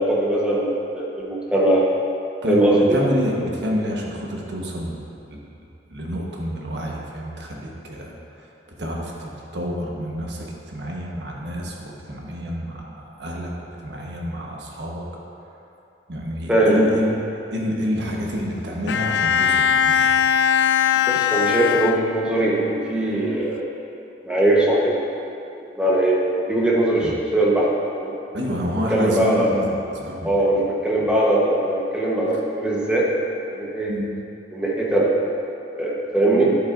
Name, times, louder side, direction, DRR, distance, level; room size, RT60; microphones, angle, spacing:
voice 1, 0.0-1.9 2.5-3.0 16.5-16.9 21.1-23.7 24.2-25.0 25.7-26.2 26.4-27.7 28.0-28.1 28.9-29.5 30.2-33.1 33.4-33.9 34.5-35.1 35.7-36.5, right 1 dB, 5° right, -5 dB, 1.1 m, -20 dB
voice 2, 2.4-5.0 5.3-5.4 5.9-8.1 8.8-13.5 13.8-15.0 16.1-17.1 17.5-20.1 27.0-27.1 28.3-29.6 30.0-30.3 33.9-34.1 36.3-36.5, equal, 80° right, -2 dB, 1.2 m, -28 dB
Bowed string instrument, 18.9-22.5, left 8 dB, 85° left, 0.3 m, -20 dB
10.5 x 8.2 x 2.6 m, 2.8 s
head